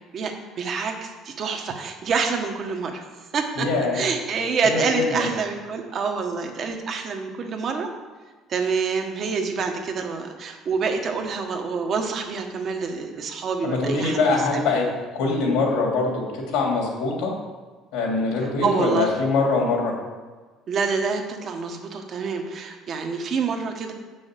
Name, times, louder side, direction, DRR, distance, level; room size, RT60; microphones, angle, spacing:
voice 1, 0.1-3.1 3.3-3.7 3.9-7.9 8.5-14.7 18.6-19.1 20.7-23.9, right 5 dB, 40° right, 4 dB, 1.3 m, -27 dB
voice 2, 3.6-4.0 4.6-5.3 13.6-14.9 15.1-17.3 17.9-19.9, left 3 dB, 85° left, -1 dB, 3.0 m, -23 dB
7.8 x 6.2 x 7.7 m, 1.4 s
cardioid pair, 145°, 0 cm